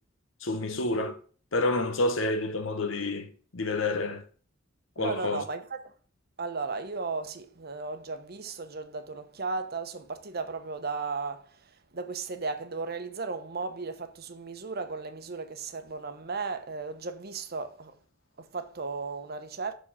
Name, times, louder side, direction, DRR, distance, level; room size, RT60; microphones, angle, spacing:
voice 1, 0.4-1.2 1.5-4.2 5.0-5.4, left 2 dB, 85° left, 1.1 m, -29 dB
voice 2, 5.0-5.8 6.4-11.5 11.9-17.9 18.4-19.7, right 4 dB, 55° right, 0.9 m, -35 dB
6.1 x 5.0 x 5.5 m
head